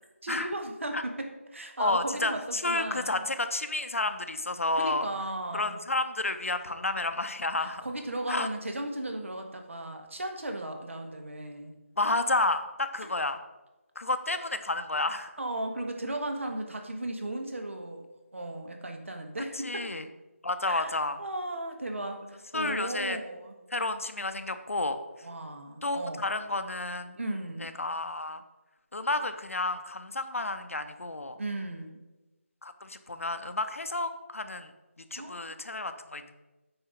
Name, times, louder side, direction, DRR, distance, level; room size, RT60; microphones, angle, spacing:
voice 1, 0.2-3.3 4.8-5.8 7.6-11.7 15.4-18.0 18.3-19.8 20.7-20.9 21.2-23.5 25.2-26.3 27.2-27.7 31.4-32.0 35.2-35.6, right 1 dB, 60° right, 4 dB, 1.4 m, -36 dB
voice 2, 1.8-5.1 5.5-7.8 8.3-8.5 12.0-13.4 14.0-15.4 19.6-20.1 20.4-21.2 22.5-23.2 23.7-25.3 25.8-27.2 27.6-28.4 28.9-31.4 32.6-34.7 35.0-36.3, left 2 dB, 75° left, 9 dB, 0.8 m, -31 dB
8.9 x 4.6 x 5.1 m, 1.1 s
figure-of-eight pair, 170°, 7 cm